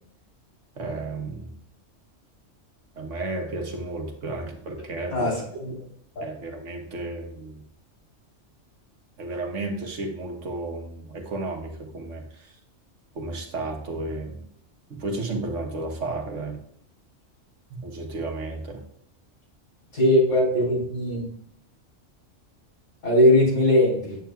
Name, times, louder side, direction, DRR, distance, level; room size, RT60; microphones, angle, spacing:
voice 1, 0.8-1.5 3.0-5.3 6.2-7.6 9.2-12.5 13.1-14.5 14.9-16.6 17.7-18.8, right 2 dB, 70° right, 2 dB, 1.4 m, -33 dB
voice 2, 19.9-21.3 23.0-24.2, left 1 dB, 75° left, -6 dB, 4.1 m, -20 dB
8.9 x 8.1 x 2.3 m, 0.67 s
omnidirectional pair, 1.3 m